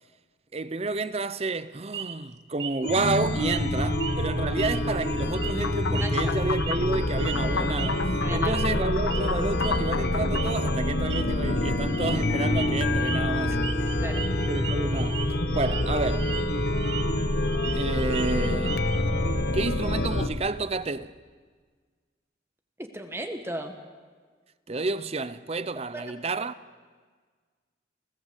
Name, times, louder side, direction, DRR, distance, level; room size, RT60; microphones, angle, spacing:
voice 1, 0.5-8.0 8.3-13.6 14.5-15.2 15.5-16.3 17.7-18.8 19.5-21.1 24.7-26.5, right 3 dB, 35° right, 0.7 m, -30 dB
sound 1, 1.9-2.2 2.6-2.9 3.4-3.6 3.9-4.2 4.6-5.0 5.3-5.5 5.9-6.8 7.2-7.4 7.8-8.0 8.5-8.8 9.1-9.3 9.6-9.9 10.3-10.5 10.9-11.2 11.9-12.2 12.5-12.7 13.0-13.2 13.6-15.2 15.6-15.8 16.1-17.0 17.3-19.0, right 10 dB, 75° right, 1.2 m, -37 dB
Chime, 2.8-20.3, left 1 dB, 60° left, 1.5 m, -26 dB
sound 2, 5.6-10.8, left 6 dB, 85° left, 0.7 m, -33 dB
voice 2, 6.0-6.3 8.2-8.6 14.0-14.3 22.8-23.7 25.9-26.0, right 1 dB, 15° right, 1.5 m, -35 dB
29.0 x 15.5 x 8.3 m
head